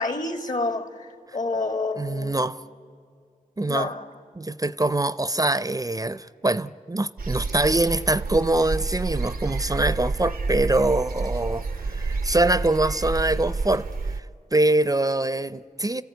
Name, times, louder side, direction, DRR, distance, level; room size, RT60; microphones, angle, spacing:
voice 1, 0.0-2.4 3.7-4.0, left 2 dB, 60° left, 1.8 m, -28 dB
voice 2, 2.0-2.6 3.6-3.9 4.4-14.2 14.5-16.0, right 2 dB, 25° right, 0.5 m, -24 dB
sound 1, 7.2-14.2, right 3 dB, 85° right, 0.7 m, -29 dB
29.0 x 14.0 x 9.4 m
cardioid pair, 40°, 15 cm